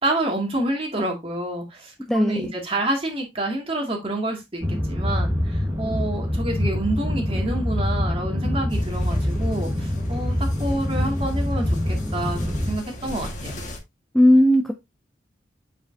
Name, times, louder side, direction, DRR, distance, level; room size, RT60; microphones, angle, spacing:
voice 1, 0.0-13.6, right 1 dB, 30° right, 1 dB, 2.2 m, -28 dB
voice 2, 2.1-2.4 14.1-14.7, left 1 dB, ahead, 5 dB, 0.5 m, -16 dB
sound 1, 4.6-12.8, left 1 dB, 15° right, 1.3 m, -25 dB
sound 2, 8.7-13.8, left 1 dB, 40° left, 1.6 m, -37 dB
8.4 x 5.0 x 2.7 m, 0.22 s
head